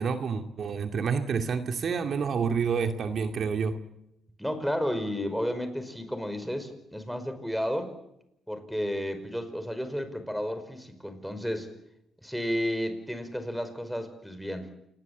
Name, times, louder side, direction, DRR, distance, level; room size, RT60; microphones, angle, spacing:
voice 1, 0.0-3.8, right 6 dB, 55° right, 6 dB, 2.3 m, -28 dB
voice 2, 4.4-7.9 8.5-11.7 12.2-14.7, equal, ahead, 10 dB, 5.2 m, -32 dB
28.5 x 21.0 x 8.4 m, 0.82 s
cardioid pair, 90°, 0 cm